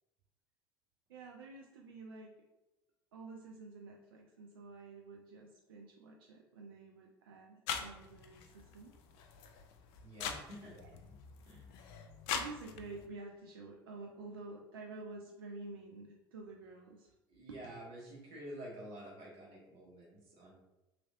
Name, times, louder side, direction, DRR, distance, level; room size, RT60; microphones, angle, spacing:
voice 1, 1.1-2.3 3.1-8.9 10.7-10.9 12.3-17.1 17.5-17.6, right 3 dB, 70° right, 1 dB, 0.4 m, -50 dB
sound 1, 7.7-13.0, left 6 dB, 55° left, 0.4 m, -43 dB
voice 2, 10.0-10.8 11.4-11.7 17.3-20.5, right 1 dB, 55° right, -5 dB, 1.0 m, -49 dB
3.1 x 2.5 x 2.6 m, 0.95 s
figure-of-eight pair, 65°, 12 cm